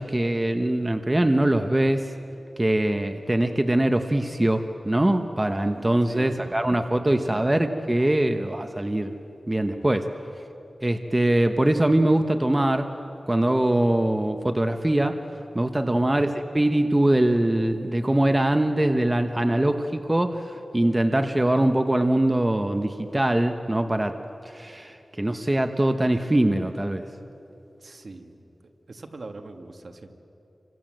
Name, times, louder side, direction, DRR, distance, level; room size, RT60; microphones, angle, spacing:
voice 1, 0.0-2.1 2.6-9.1 9.5-10.1 10.8-12.9 13.3-15.2 15.5-24.2 24.4-27.0, right 1 dB, 20° right, 6 dB, 1.1 m, -22 dB
voice 2, 6.0-6.6 7.0-7.5 15.8-16.2 27.8-30.1, right 3 dB, 60° right, 5 dB, 1.9 m, -42 dB
28.5 x 25.0 x 7.7 m, 3.0 s
wide cardioid pair, 80°, 0 cm